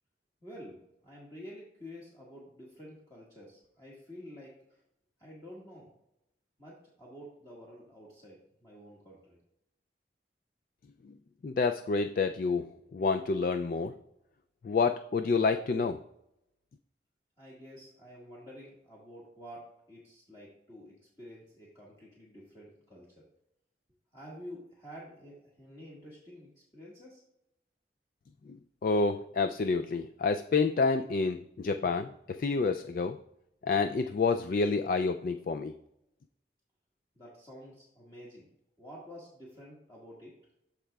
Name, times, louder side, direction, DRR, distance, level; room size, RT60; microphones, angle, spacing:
voice 1, 0.4-4.8 5.2-5.9 6.6-9.4 17.4-23.2 24.1-27.2 37.1-38.5 38.8-40.3, equal, 20° left, -7 dB, 1.7 m, -49 dB
voice 2, 11.4-13.9 14.6-16.0 28.8-33.2 33.6-35.7, left 4 dB, 50° left, 8 dB, 0.3 m, -28 dB
13.5 x 4.9 x 2.3 m, 0.82 s
head